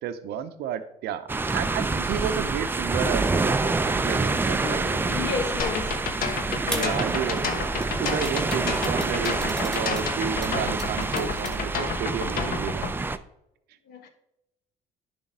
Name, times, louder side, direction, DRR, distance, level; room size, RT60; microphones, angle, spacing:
voice 1, 0.0-4.9 6.6-7.7 8.0-12.9, right 8 dB, 75° right, 0.7 m, -32 dB
sound 1, 1.3-13.2, right 3 dB, 10° right, 0.4 m, -27 dB
voice 2, 4.6-6.0 6.7-7.0 13.9-14.1, left 5 dB, 75° left, 1.4 m, -32 dB
sound 2, 5.6-12.9, left 5 dB, 60° left, 1.1 m, -30 dB
sound 3, 6.7-11.6, right 1 dB, 5° left, 1.7 m, -38 dB
10.5 x 3.5 x 5.4 m
cardioid pair, 110°, 17 cm